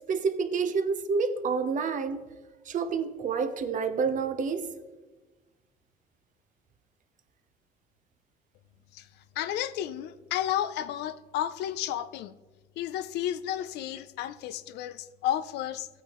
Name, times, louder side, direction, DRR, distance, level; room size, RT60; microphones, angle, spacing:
voice 1, 0.1-2.3 2.7-4.7, right 5 dB, 50° right, 0.9 m, -28 dB
voice 2, 9.4-12.3 12.8-15.9, left 11 dB, 80° left, 0.5 m, -32 dB
14.0 x 9.0 x 3.1 m
cardioid pair, 110°, 17 cm